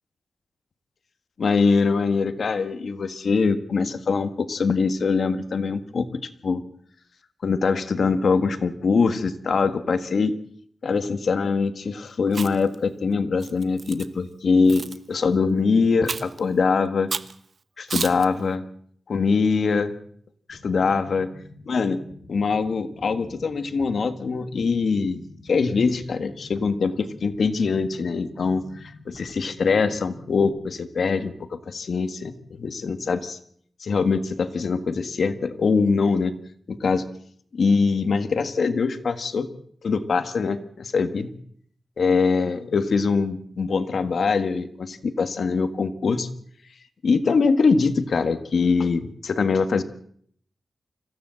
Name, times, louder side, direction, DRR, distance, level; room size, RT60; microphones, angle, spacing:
voice 1, 1.4-6.6 7.4-10.4 10.8-17.1 17.8-18.6 19.1-19.9 20.5-21.3 21.7-22.0 22.3-25.2 25.4-33.4 33.8-36.3 36.7-37.0 37.5-39.5 39.8-41.3 42.0-46.3 47.0-49.8, left 4 dB, 60° left, 10 dB, 1.7 m, -23 dB
Chewing mastication, 12.3-12.7 13.4-14.1 14.7-15.0 16.1-16.4 17.1-17.3 17.9-18.3, right 4 dB, 45° right, 1.0 m, -31 dB
sound 1, 20.5-30.5, left 2 dB, 30° left, 3.8 m, -46 dB
26.0 x 16.5 x 7.8 m, 0.63 s
wide cardioid pair, 170°, 0 cm